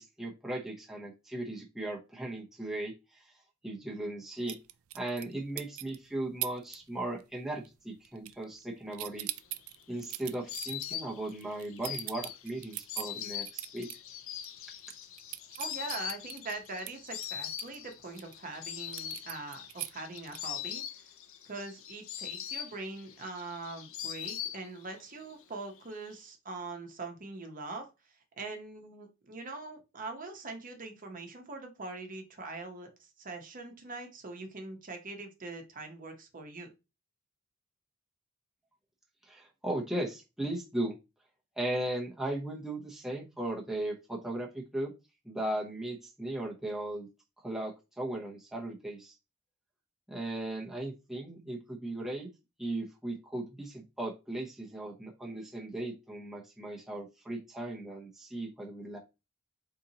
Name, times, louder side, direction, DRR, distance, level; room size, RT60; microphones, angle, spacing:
voice 1, 0.0-3.2 3.6-4.6 4.9-9.3 9.9-13.9 39.3-41.0 41.6-44.9 45.2-47.1 47.4-49.1 50.1-52.3 52.6-59.0, right 1 dB, ahead, -3 dB, 0.8 m, -37 dB
sound 1, 4.5-5.3 5.6-6.0 6.4-6.8 7.1-7.4 7.6-8.6 8.9-14.0 14.4-14.5 14.8-18.3 18.9-20.6, right 17 dB, 75° right, 0.4 m, -41 dB
Insect, 9.3-25.0 25.3-26.1, left 10 dB, 65° left, 0.5 m, -42 dB
voice 2, 15.6-20.8 21.4-27.9 28.4-36.7, right 3 dB, 40° right, 4 dB, 0.9 m, -42 dB
4.3 x 3.8 x 2.8 m, 0.26 s
head